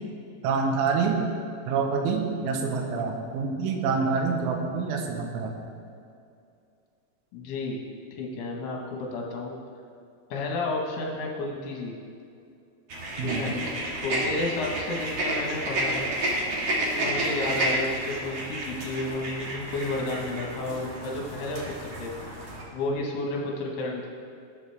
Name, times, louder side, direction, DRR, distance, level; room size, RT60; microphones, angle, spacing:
voice 1, 0.4-1.3 1.7-5.5 13.2-13.6, right 5 dB, 75° right, 2 dB, 3.4 m, -27 dB
voice 2, 7.3-7.8 8.2-9.6 10.3-11.9 13.2-13.6 14.0-16.1 17.0-22.4 22.7-24.1, left 2 dB, 65° left, -1 dB, 3.0 m, -32 dB
sound 1, 12.9-22.6, right 1 dB, 55° right, 1.8 m, -31 dB
19.5 x 8.3 x 3.5 m, 2.4 s
omnidirectional pair, 5.8 m